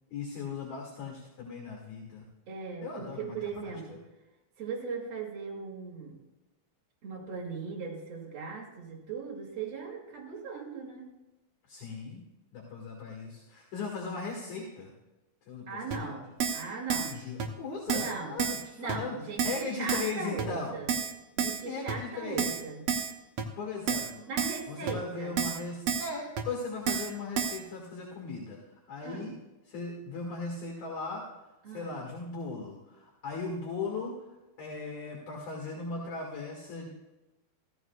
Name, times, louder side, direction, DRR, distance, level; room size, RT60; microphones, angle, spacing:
voice 1, 0.1-2.2 2.8-3.7 11.7-12.2 12.5-14.9 15.5-16.2 17.1-19.2 19.4-20.8 21.6-22.4 23.6-24.2 24.7-28.6 28.9-29.3 29.6-31.3 31.7-34.3 34.6-36.9, left 4 dB, 60° left, -2 dB, 3.2 m, -38 dB
voice 2, 2.5-4.0 4.6-6.2 7.0-11.1 15.7-17.2 17.9-18.4 18.8-20.9 21.4-22.9 24.2-25.4 29.0-29.3 31.6-32.0, right 4 dB, 45° right, -2 dB, 3.1 m, -39 dB
Keyboard (musical), 15.9-16.0 16.4-16.6 16.9-17.1 17.4-17.5 17.9-18.1 18.4-18.6 18.9-19.0 19.4-19.6 19.9-20.1 20.4-20.5 20.9-21.1 21.4-21.6 21.9-22.0 22.4-22.6 22.9-23.1 23.4-23.5 23.9-24.1 24.4-24.6 24.9-25.0 25.4-25.6 25.9-26.1 26.4-26.5 26.9-27.1 27.4-27.6, right 7 dB, 70° right, 1.6 m, -30 dB
15.5 x 14.5 x 2.4 m, 1.1 s
omnidirectional pair, 4.1 m